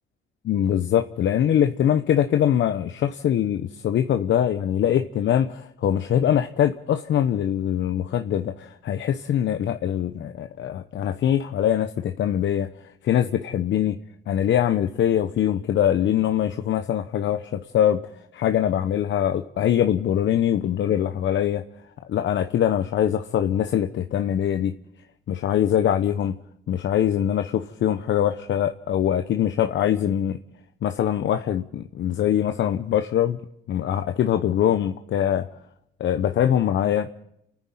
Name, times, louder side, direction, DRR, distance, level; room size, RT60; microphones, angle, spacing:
voice 1, 0.4-14.0 14.3-18.0 18.3-21.6 22.1-24.7 25.3-26.4 26.7-30.4 30.8-33.4 33.7-35.5 36.0-37.1, left 10 dB, 70° left, 1.0 m, -23 dB
29.0 x 10.0 x 9.2 m
cardioid pair, 90°, 20 cm